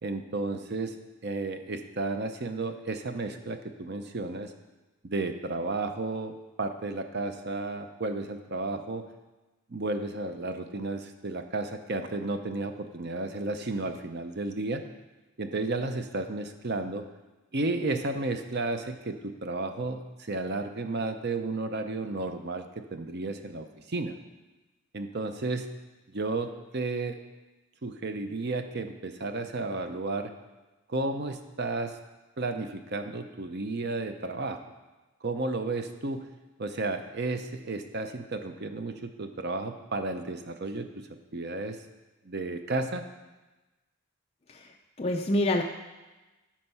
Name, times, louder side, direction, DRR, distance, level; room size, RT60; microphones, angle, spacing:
voice 1, 0.0-1.0 1.2-4.5 5.0-9.1 9.7-14.8 15.4-17.0 17.5-24.2 24.9-25.7 26.1-27.2 27.8-30.3 30.9-32.0 32.4-34.6 35.2-36.2 36.6-40.9 41.3-41.8 42.2-43.0, right 2 dB, 45° right, 7 dB, 0.6 m, -33 dB
voice 2, 44.5-45.6, left 1 dB, 25° left, 1 dB, 0.4 m, -27 dB
12.5 x 4.4 x 5.6 m, 1.1 s
head